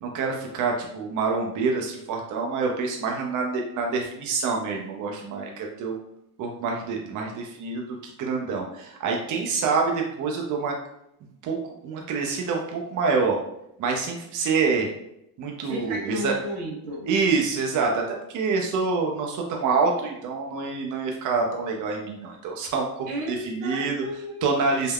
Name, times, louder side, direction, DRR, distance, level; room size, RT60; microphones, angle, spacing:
voice 1, 0.0-6.0 6.4-10.7 11.4-13.4 13.8-14.9 15.4-16.3 17.1-24.0 24.4-24.9, right 4 dB, 50° right, 1 dB, 0.6 m, -26 dB
voice 2, 15.7-17.1 23.1-24.5, equal, 90° right, -2 dB, 1.0 m, -33 dB
3.4 x 2.1 x 2.3 m, 0.81 s
cardioid pair, 100°, 42 cm